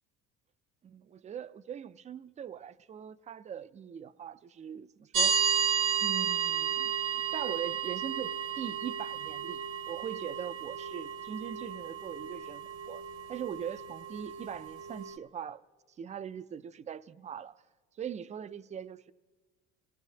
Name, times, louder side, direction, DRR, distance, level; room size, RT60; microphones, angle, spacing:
voice 1, 0.8-5.4 6.0-13.0 13.3-15.6 16.0-17.6 18.0-19.1, right 8 dB, 25° right, 0.4 m, -41 dB
sound 1, 5.1-15.2, right 7 dB, 65° right, 1.0 m, -33 dB
26.0 x 18.0 x 2.7 m
supercardioid pair, 100°, 32 cm